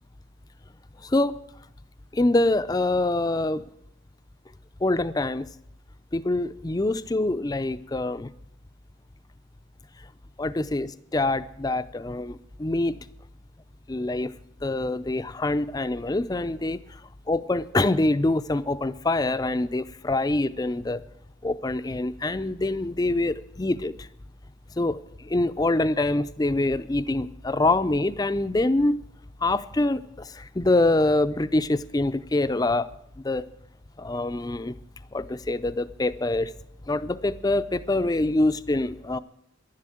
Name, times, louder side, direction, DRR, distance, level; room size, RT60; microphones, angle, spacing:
voice 1, 1.0-1.3 2.1-3.6 4.8-5.5 6.1-8.3 10.4-13.0 13.9-14.3 14.6-16.8 17.3-21.0 21.4-23.9 24.8-25.0 25.2-29.0 29.4-32.9 33.2-33.5 34.0-34.7 35.1-36.5 36.9-39.2, left 2 dB, 20° left, 13 dB, 0.4 m, -25 dB
11.5 x 11.5 x 7.7 m, 0.76 s
head